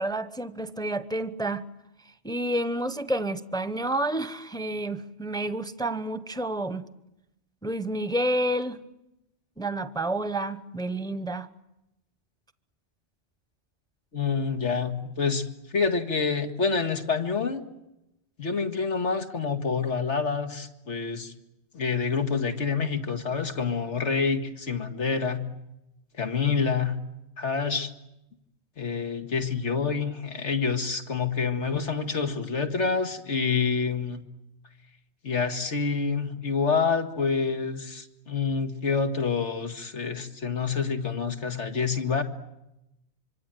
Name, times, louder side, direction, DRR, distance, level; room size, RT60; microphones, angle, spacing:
voice 1, 0.0-1.6 2.2-6.8 7.6-8.8 9.6-11.5, right 1 dB, 5° left, 0.8 m, -29 dB
voice 2, 14.1-15.4 15.7-17.6 18.4-21.3 21.7-25.4 26.2-27.0 27.4-27.9 28.8-34.2 35.2-42.2, left 5 dB, 85° left, 2.3 m, -27 dB
26.0 x 24.5 x 9.1 m
omnidirectional pair, 1.2 m